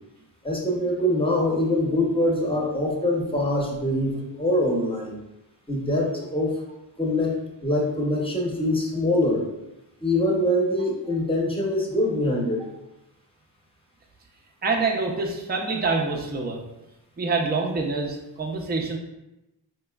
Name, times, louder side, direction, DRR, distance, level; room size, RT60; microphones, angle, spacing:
voice 1, 0.4-5.2 5.7-6.6 7.0-9.4 10.0-12.7, left 1 dB, 10° left, -2 dB, 0.8 m, -24 dB
voice 2, 14.6-16.6 17.2-19.0, right 3 dB, 25° right, 1 dB, 0.5 m, -26 dB
4.2 x 2.9 x 2.3 m, 0.92 s
wide cardioid pair, 105°, 44 cm